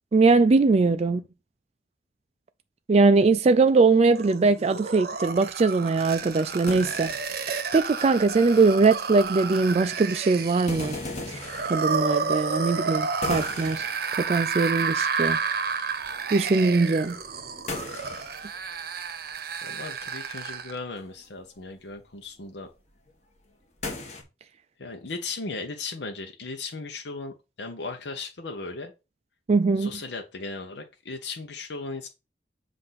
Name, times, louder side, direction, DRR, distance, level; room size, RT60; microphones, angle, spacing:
voice 1, 0.1-1.2 2.9-7.1 7.5-11.0 11.3-11.4 11.7-13.9 14.2-15.4 16.3-17.2 29.5-29.9, right 3 dB, 35° right, 0.4 m, -21 dB
sound 1, 4.1-20.8, right 5 dB, 60° right, 0.8 m, -31 dB
sound 2, 5.2-5.3 5.7-5.8 6.0-8.5 8.8-9.9 10.6-12.8 13.2-14.9 15.2-15.7 16.0-19.4 19.7-20.3 20.9-24.2, left 2 dB, 40° left, 1.5 m, -39 dB
voice 2, 19.6-22.7 24.8-28.9 29.8-32.1, left 3 dB, 75° left, 0.8 m, -37 dB
7.6 x 2.6 x 5.7 m
head